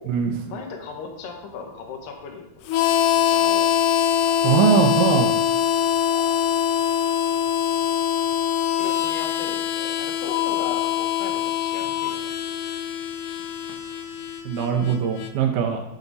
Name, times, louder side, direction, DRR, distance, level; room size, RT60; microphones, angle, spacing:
voice 1, 0.5-2.5 2.7-3.7 4.2-4.4 6.1-6.4 8.8-12.3, left 5 dB, 65° left, 3 dB, 2.5 m, -37 dB
Harmonica, 2.7-15.3, left 9 dB, 85° left, 2.7 m, -23 dB
voice 2, 4.4-5.3 14.5-15.8, right 7 dB, 75° right, 3 dB, 2.4 m, -21 dB
9.4 x 5.8 x 4.0 m, 0.91 s
omnidirectional pair, 4.9 m